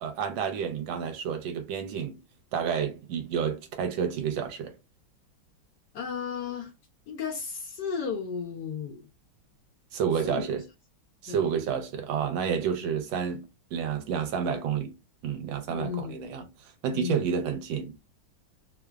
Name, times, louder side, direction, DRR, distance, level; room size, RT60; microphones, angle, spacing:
voice 1, 0.0-2.2 2.5-4.7 9.9-10.6 11.2-13.4 13.7-14.9 15.2-18.0, right 7 dB, 75° right, 1.3 m, -30 dB
voice 2, 5.9-6.7 7.1-9.1 10.2-10.5 11.3-11.7 12.8-12.9 15.7-16.1 16.9-17.3, left 6 dB, 70° left, 1.0 m, -34 dB
3.2 x 2.0 x 2.2 m
omnidirectional pair, 2.2 m